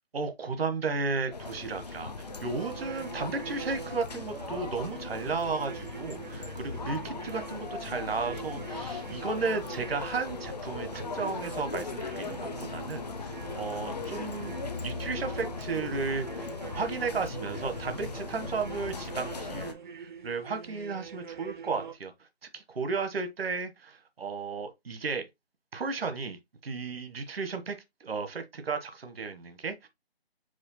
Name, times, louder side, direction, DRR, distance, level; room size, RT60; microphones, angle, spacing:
voice 1, 0.1-14.6 14.8-19.8 20.2-22.1 22.5-25.3 25.7-29.9, right 4 dB, 65° right, 1.0 m, -34 dB
sound 1, 1.3-19.7, left 4 dB, 40° left, 0.5 m, -38 dB
sound 2, 2.2-21.9, right 6 dB, 50° right, 0.5 m, -44 dB
5.0 x 2.1 x 4.0 m
figure-of-eight pair, 165°, 32 cm